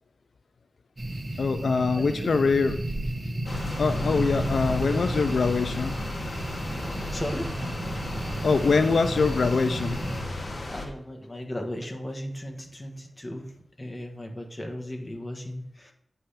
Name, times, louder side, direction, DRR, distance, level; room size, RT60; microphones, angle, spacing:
sound 1, 1.0-10.2, right 1 dB, 35° right, 1.2 m, -33 dB
voice 1, 1.4-2.7 3.8-6.0 8.4-10.0, left 4 dB, 85° left, 9 dB, 0.4 m, -23 dB
voice 2, 1.9-2.3 6.9-8.2 10.4-15.9, left 1 dB, 25° left, 2 dB, 1.4 m, -37 dB
sound 2, 3.4-10.9, left 2 dB, 45° left, 1.3 m, -34 dB
8.7 x 3.4 x 5.7 m, 0.77 s
wide cardioid pair, 85°, 0 cm